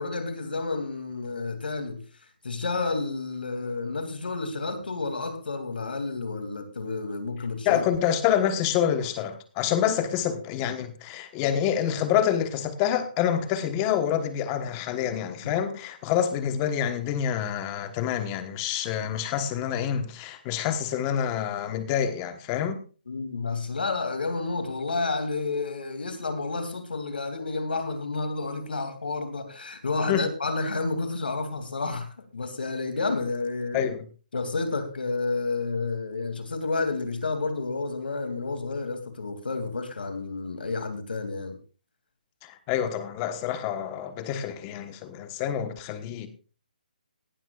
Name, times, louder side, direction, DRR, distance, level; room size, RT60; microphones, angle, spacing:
voice 1, 0.0-2.0 2.4-7.8 15.4-15.5 23.1-33.8 34.3-41.6, left 3 dB, 85° left, 2.8 m, -30 dB
voice 2, 7.6-22.8 30.1-30.2 33.7-34.1 42.4-46.3, left 9 dB, 20° left, 1.3 m, -27 dB
18.0 x 12.5 x 2.5 m
hypercardioid pair, 160°, 5 cm